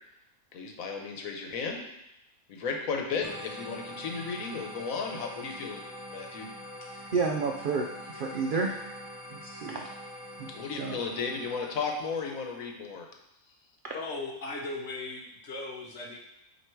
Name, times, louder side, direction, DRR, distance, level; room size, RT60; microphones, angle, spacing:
voice 1, 0.5-1.8 2.5-6.5 10.5-13.1, left 5 dB, 80° left, 2 dB, 1.3 m, -34 dB
sound 1, 3.2-12.6, left 1 dB, 15° left, 0.7 m, -44 dB
voice 2, 6.9-8.8 9.3-9.9 10.4-10.5 10.8-11.0 13.8-14.0, right 4 dB, 65° right, 1 dB, 0.5 m, -31 dB
voice 3, 13.9-16.2, left 2 dB, 55° left, 1 dB, 1.2 m, -37 dB
7.8 x 2.9 x 4.5 m, 0.84 s
omnidirectional pair, 1.4 m